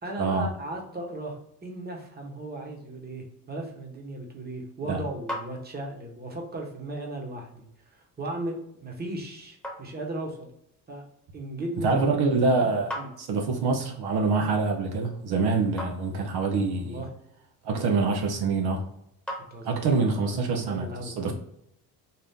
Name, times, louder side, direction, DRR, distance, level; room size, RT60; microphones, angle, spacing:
voice 1, 0.0-10.5 10.9-11.0 11.3-11.9 12.6-13.1 16.7-17.1 19.5-21.3, right 1 dB, 25° right, 1 dB, 1.1 m, -37 dB
sound 1, 5.0-20.1, equal, 5° left, 1.1 m, -45 dB
voice 2, 11.8-12.9 13.2-17.0 17.6-18.8 19.6-21.3, right 4 dB, 70° right, 3 dB, 0.8 m, -25 dB
4.2 x 2.5 x 3.5 m, 0.76 s
cardioid pair, 110°, 41 cm